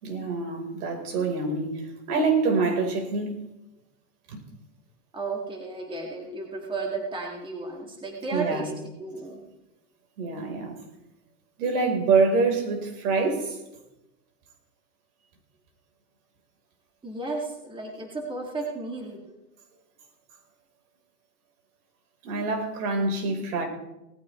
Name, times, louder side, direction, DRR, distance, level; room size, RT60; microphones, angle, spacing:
voice 1, 0.0-3.4 4.3-4.4 8.3-8.7 10.2-10.8 11.6-13.6 22.2-23.7, right 4 dB, 70° right, 3 dB, 4.2 m, -26 dB
voice 2, 5.1-9.4 17.0-19.2, right 3 dB, 10° right, 0 dB, 2.0 m, -33 dB
19.0 x 14.5 x 3.2 m, 0.96 s
supercardioid pair, 145°, 47 cm